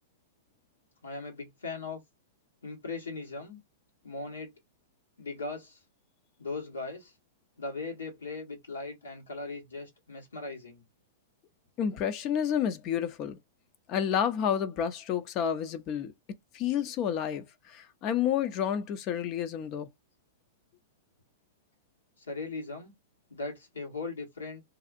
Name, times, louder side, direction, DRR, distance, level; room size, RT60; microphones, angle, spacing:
voice 1, 1.0-2.0 2.6-3.6 4.0-4.5 5.2-5.8 6.4-7.2 7.6-10.8 22.2-22.9 23.3-24.6, left 3 dB, 85° left, 1.3 m, -39 dB
voice 2, 11.8-13.4 13.9-16.1 16.5-19.9, left 8 dB, 40° left, 0.5 m, -30 dB
2.6 x 2.4 x 2.5 m
hypercardioid pair, 110°, 0 cm